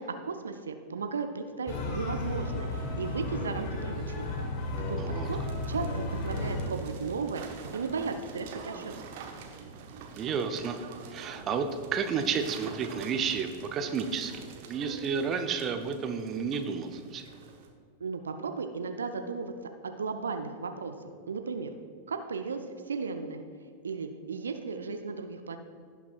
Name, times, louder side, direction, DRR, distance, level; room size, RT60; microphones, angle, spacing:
voice 1, 0.0-4.4 4.9-5.0 5.2-5.4 5.7-7.4 7.7-9.0 17.2-17.3 18.0-19.5 19.8-20.9 21.3-21.7 22.1-22.6 22.9-23.4 23.8-25.6, right 4 dB, 70° right, 7 dB, 0.5 m, -35 dB
sound 1, 1.7-6.7, left 2 dB, 40° left, 1.3 m, -33 dB
voice 2, 5.0-5.3 10.2-10.8 11.1-14.4 14.7-17.2, right 6 dB, 30° right, 7 dB, 0.7 m, -31 dB
sound 2, 5.2-17.7, right 5 dB, 50° right, 1.0 m, -46 dB
17.0 x 5.8 x 2.4 m, 2.3 s
figure-of-eight pair, 90°, 0 cm